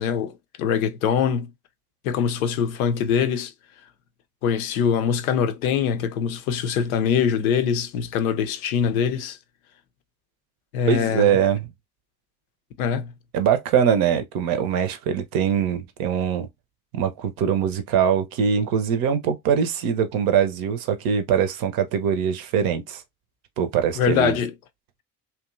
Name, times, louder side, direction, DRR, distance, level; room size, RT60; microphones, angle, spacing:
voice 1, 0.0-1.5 2.0-3.5 4.4-9.4 10.7-11.4 12.8-13.1 24.0-24.5, left 7 dB, 70° left, 0.5 m, -23 dB
voice 2, 10.9-11.7 13.3-16.5 16.9-23.0 23.6-24.4, right 8 dB, 55° right, 0.6 m, -22 dB
2.7 x 2.2 x 2.4 m
figure-of-eight pair, 45°, 43 cm